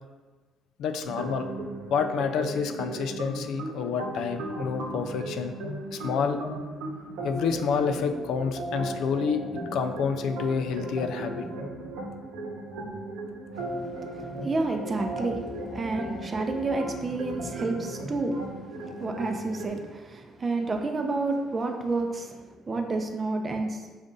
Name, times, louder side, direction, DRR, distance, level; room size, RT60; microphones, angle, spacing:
voice 1, 0.8-1.5 1.9-5.5 5.9-6.4 7.2-9.4 9.7-11.4, left 6 dB, 70° left, 7 dB, 0.3 m, -28 dB
sound 1, 1.0-19.7, right 1 dB, 85° right, 0.9 m, -36 dB
voice 2, 13.6-24.0, right 3 dB, 30° right, 4 dB, 0.5 m, -30 dB
5.2 x 2.4 x 3.8 m, 1.3 s
cardioid pair, 100°, 0 cm